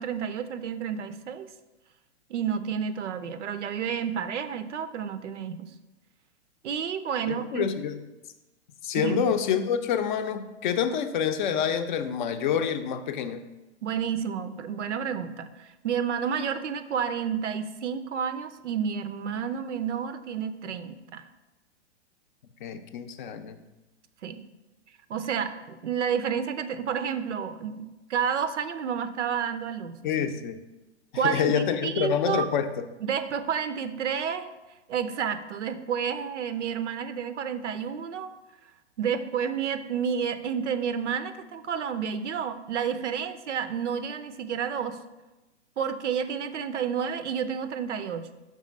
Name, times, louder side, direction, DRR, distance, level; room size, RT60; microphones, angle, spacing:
voice 1, 0.0-1.5 2.3-5.7 6.6-7.7 8.9-9.3 13.8-21.2 24.2-24.4 25.1-30.1 31.1-32.5 33.0-34.5 34.9-38.3 39.0-45.0 45.8-48.3, right 7 dB, 80° right, 11 dB, 0.6 m, -30 dB
voice 2, 7.3-8.0 8.8-13.4 22.6-23.6 30.0-30.6 31.2-32.8, left 8 dB, 45° left, 9 dB, 0.5 m, -27 dB
5.4 x 3.6 x 5.2 m, 1.0 s
hypercardioid pair, 120°, 35 cm